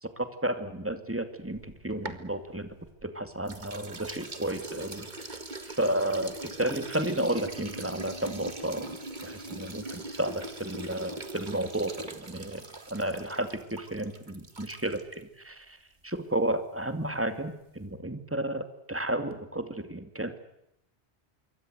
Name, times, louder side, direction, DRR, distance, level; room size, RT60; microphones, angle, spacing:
voice 1, 0.0-2.8 3.0-5.4 5.7-9.0 9.2-15.8 16.0-20.4, right 1 dB, 10° right, 8 dB, 2.5 m, -32 dB
sound 1, 1.5-3.1 3.5-15.2, right 2 dB, 45° right, 2.1 m, -42 dB
26.5 x 23.5 x 8.1 m, 0.81 s
omnidirectional pair, 1.1 m